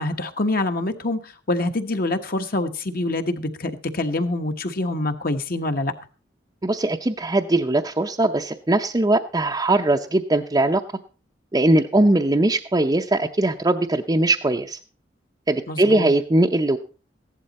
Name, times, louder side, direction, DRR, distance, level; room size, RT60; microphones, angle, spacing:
voice 1, 0.0-5.9 15.7-16.1, left 2 dB, 55° left, 7 dB, 1.3 m, -25 dB
voice 2, 6.6-10.8 11.5-14.8 15.5-16.8, right 2 dB, 20° right, 2 dB, 0.6 m, -20 dB
15.0 x 11.5 x 4.2 m, 0.36 s
head